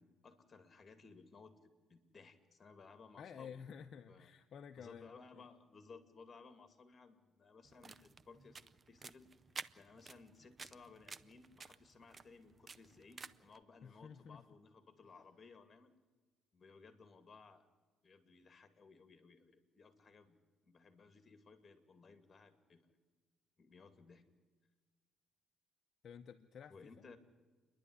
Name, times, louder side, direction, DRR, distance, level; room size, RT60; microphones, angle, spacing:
voice 1, 0.0-3.6 4.1-4.3 4.8-9.3 9.8-15.9 16.5-17.7 18.0-20.4 20.6-22.9 23.6-24.2 26.7-27.2, left 4 dB, 30° left, 8 dB, 2.5 m, -59 dB
voice 2, 3.2-5.1 5.4-5.5 13.8-14.4 26.0-26.9, left 7 dB, 50° left, 6 dB, 0.8 m, -52 dB
sound 1, 7.6-13.6, right 4 dB, 30° right, 0.6 m, -53 dB
29.0 x 11.0 x 9.8 m, 1.4 s
cardioid pair, 130°, 0 cm